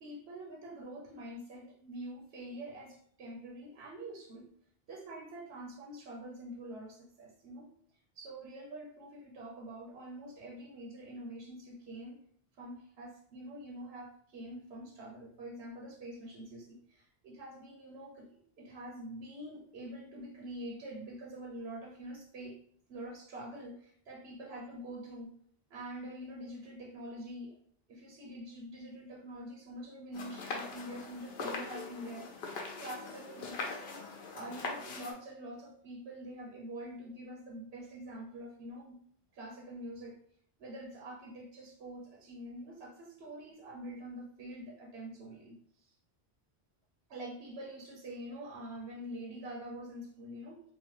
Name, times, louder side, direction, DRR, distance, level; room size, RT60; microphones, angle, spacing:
voice 1, 0.0-4.5 4.9-7.7 8.2-12.2 12.6-22.6 22.9-25.3 25.7-27.6 27.9-34.0 34.3-39.0 39.3-40.2 40.6-45.9 47.1-50.6, right 1 dB, 85° right, -1 dB, 0.9 m, -45 dB
sound 1, 30.1-35.1, left 4 dB, 80° left, 0.8 m, -41 dB
2.9 x 2.0 x 3.0 m, 0.62 s
omnidirectional pair, 1.0 m